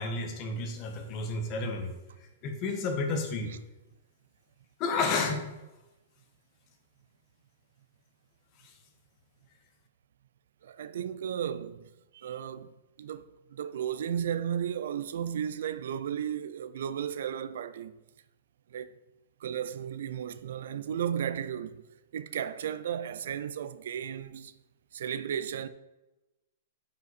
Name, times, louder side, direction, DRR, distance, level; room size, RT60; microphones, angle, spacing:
voice 1, 0.0-1.9 2.4-3.5 4.8-5.4, left 3 dB, 30° left, 1.4 m, -31 dB
voice 2, 10.6-12.7 13.0-17.9 18.7-18.9 19.4-21.8 22.1-24.5 24.9-25.7, right 9 dB, 70° right, 0.5 m, -34 dB
9.2 x 5.4 x 4.2 m
hypercardioid pair, 155°, 0 cm